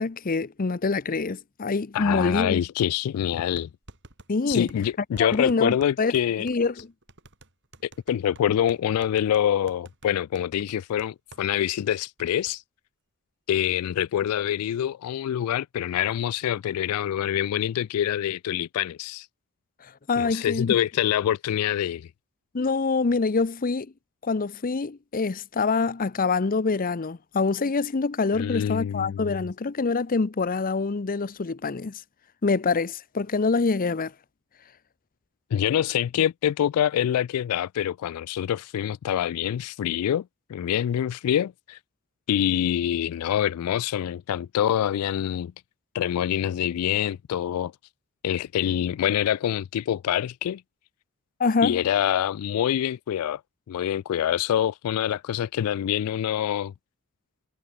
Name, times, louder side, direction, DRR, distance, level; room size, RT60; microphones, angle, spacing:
voice 1, 0.0-2.6 4.3-4.7 5.2-6.1 6.4-6.9 20.1-20.8 22.5-23.9 24.2-32.0 32.4-34.1 51.4-51.8, left 4 dB, 40° left, 0.6 m, -25 dB
voice 2, 1.9-3.7 4.5-6.5 8.1-12.6 13.5-19.3 20.2-22.1 28.3-29.4 35.5-41.8 42.3-45.5 45.9-47.7 48.2-50.6 51.6-53.4 53.7-56.7, left 10 dB, 85° left, 0.3 m, -25 dB
sound 1, 2.6-2.7 3.5-11.5 11.8-11.9 12.2-12.5, right 2 dB, 55° right, 6.0 m, -49 dB
head